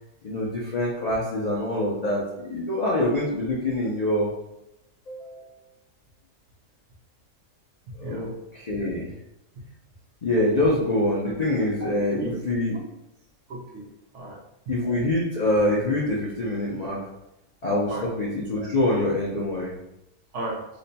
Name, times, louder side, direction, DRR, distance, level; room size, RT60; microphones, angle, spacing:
voice 1, 0.2-4.3 5.1-5.6 8.0-9.1 10.2-12.8 14.7-17.0 17.6-19.7, left 1 dB, 85° left, -5 dB, 0.3 m, -25 dB
voice 2, 8.0-8.3 11.8-11.9 12.2-12.3 13.5-14.4 17.9-18.1 20.3-20.7, right 2 dB, 60° right, -2 dB, 0.9 m, -35 dB
3.1 x 2.2 x 4.0 m, 0.86 s
omnidirectional pair, 1.7 m